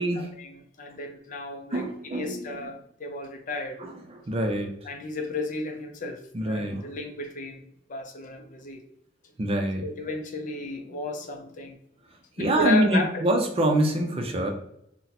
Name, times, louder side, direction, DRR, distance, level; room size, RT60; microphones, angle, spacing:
voice 1, 0.0-3.8 4.8-8.8 9.5-11.8 12.4-13.3, left 2 dB, 45° left, 5 dB, 0.5 m, -34 dB
voice 2, 1.7-2.5 3.8-3.9 4.3-4.7 6.3-6.8 9.4-9.8 12.4-14.5, right 1 dB, 35° right, 4 dB, 0.5 m, -25 dB
2.7 x 2.1 x 4.0 m, 0.76 s
head